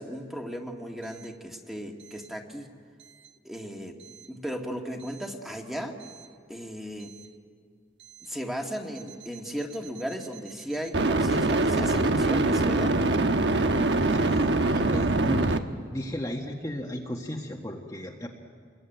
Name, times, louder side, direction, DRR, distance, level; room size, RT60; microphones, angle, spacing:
voice 1, 0.0-2.7 3.4-4.0 4.3-6.0 6.5-7.1 8.2-13.0, equal, ahead, 1 dB, 2.1 m, -36 dB
sound 1, 6.1-6.2 10.9-15.6, right 2 dB, 70° right, 1.2 m, -23 dB
voice 2, 14.1-15.6 15.9-18.3, equal, 20° left, -1 dB, 1.6 m, -35 dB
28.0 x 21.5 x 9.2 m, 2.1 s
head